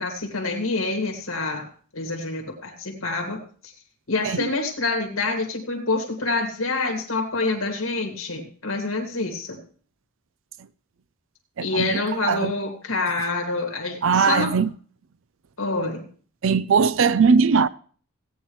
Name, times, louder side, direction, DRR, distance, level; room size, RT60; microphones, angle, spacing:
voice 1, 0.0-1.7 1.9-3.7 4.1-9.6 11.6-14.6 15.6-16.1, left 3 dB, 70° left, 2.3 m, -27 dB
voice 2, 11.6-12.5 14.0-14.7 16.4-17.7, right 5 dB, 60° right, 0.4 m, -20 dB
17.0 x 9.1 x 3.1 m
head